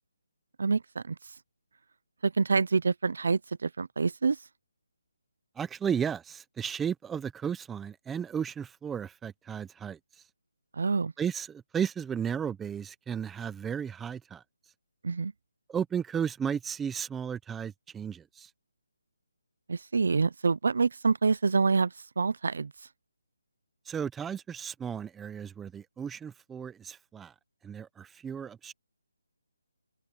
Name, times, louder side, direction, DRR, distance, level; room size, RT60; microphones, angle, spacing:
voice 1, 0.6-1.2 2.2-4.4 10.8-11.1 15.0-15.3 19.7-22.7, right 4 dB, 60° right, 0.6 m, -27 dB
voice 2, 5.6-10.0 11.2-14.4 15.7-18.5 23.9-27.3 27.6-28.7, right 7 dB, 5° right, 0.7 m, -34 dB
hypercardioid pair, 175°, 0 cm